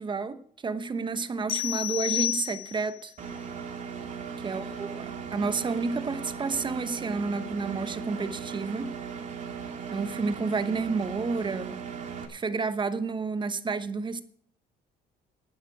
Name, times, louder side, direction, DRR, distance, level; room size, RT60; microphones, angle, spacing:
voice 1, 0.0-3.1 4.4-8.9 9.9-11.8 12.3-14.2, right 4 dB, 30° right, 1.1 m, -30 dB
sound 1, 1.5-3.0, left 15 dB, 60° left, 0.6 m, -30 dB
Engine, 3.2-12.3, right 6 dB, 45° right, 2.5 m, -38 dB
12.0 x 9.4 x 6.1 m
cardioid pair, 110°, 17 cm